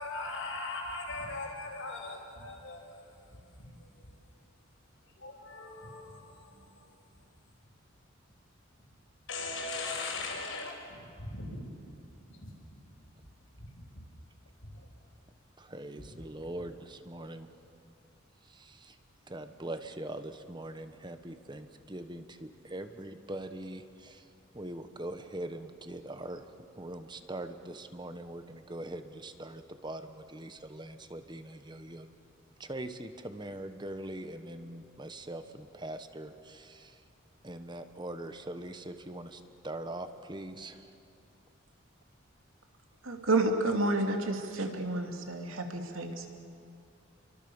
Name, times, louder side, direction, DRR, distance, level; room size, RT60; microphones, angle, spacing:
voice 1, 0.0-3.0 3.6-3.9 5.2-6.9 9.3-11.6 12.3-12.5 13.6-13.7 14.7-14.9 16.4-16.5, left 3 dB, 75° left, 0 dB, 5.9 m, -39 dB
voice 2, 15.6-17.5 18.4-19.0 19.3-24.3 24.5-32.1 32.6-37.0 37.4-40.9, right 1 dB, 20° right, 9 dB, 1.2 m, -42 dB
voice 3, 43.0-46.3, right 2 dB, 90° right, 4 dB, 2.8 m, -30 dB
29.5 x 24.0 x 7.1 m, 2.5 s
head